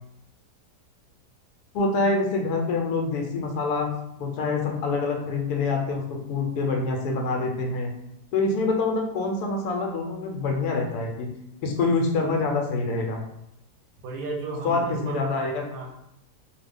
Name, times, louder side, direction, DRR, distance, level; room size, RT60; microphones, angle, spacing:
voice 1, 1.7-3.9 4.2-7.9 8.3-11.3 11.6-13.2 14.6-15.6, left 3 dB, 75° left, 2 dB, 1.1 m, -26 dB
voice 2, 14.0-15.3 15.6-15.8, right 2 dB, 70° right, 0 dB, 1.0 m, -33 dB
3.1 x 2.2 x 3.4 m, 0.80 s
omnidirectional pair, 1.7 m